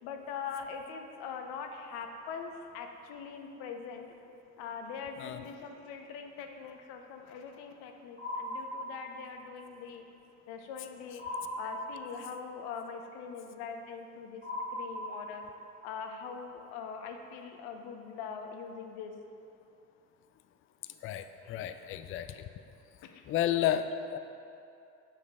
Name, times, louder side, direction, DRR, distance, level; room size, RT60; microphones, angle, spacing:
voice 1, 0.0-4.1 4.6-10.0 10.5-11.3 11.6-14.4 14.7-15.5 15.8-19.1 21.4-21.6 23.0-23.2, left 6 dB, 60° left, 5 dB, 0.8 m, -42 dB
sound 1, 8.2-9.4 11.2-12.4 14.4-15.7, left 1 dB, 20° right, 1.6 m, -39 dB
voice 2, 21.0-22.4 23.3-24.2, left 11 dB, 30° left, 10 dB, 0.4 m, -32 dB
7.6 x 6.3 x 3.6 m, 2.7 s
hypercardioid pair, 60°, 44 cm